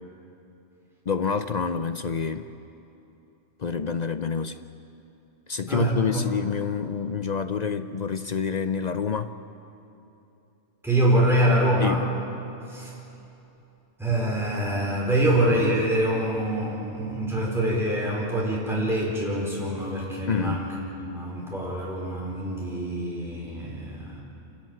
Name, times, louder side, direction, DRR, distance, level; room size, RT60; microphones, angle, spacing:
voice 1, 1.1-2.5 3.6-4.6 5.5-9.3 11.8-12.0 20.3-20.6, left 6 dB, 45° left, 0.6 m, -27 dB
voice 2, 5.7-6.2 10.8-12.1 12.7-13.0 14.0-20.8 21.0-24.2, right 1 dB, ahead, 4.5 m, -25 dB
27.5 x 13.5 x 9.1 m
omnidirectional pair, 1.2 m